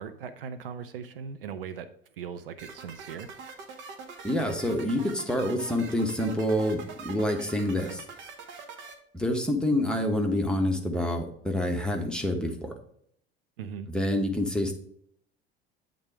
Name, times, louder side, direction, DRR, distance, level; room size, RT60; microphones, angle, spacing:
voice 1, 0.0-1.9 2.2-3.3 13.6-13.9, right 7 dB, 70° right, 11 dB, 0.6 m, -39 dB
sound 1, 2.6-8.9, right 5 dB, 40° right, 1.1 m, -44 dB
voice 2, 4.2-8.0 9.1-12.7 13.9-14.7, left 1 dB, 5° left, 2 dB, 1.1 m, -27 dB
8.6 x 3.8 x 4.5 m, 0.67 s
figure-of-eight pair, 70°, 29 cm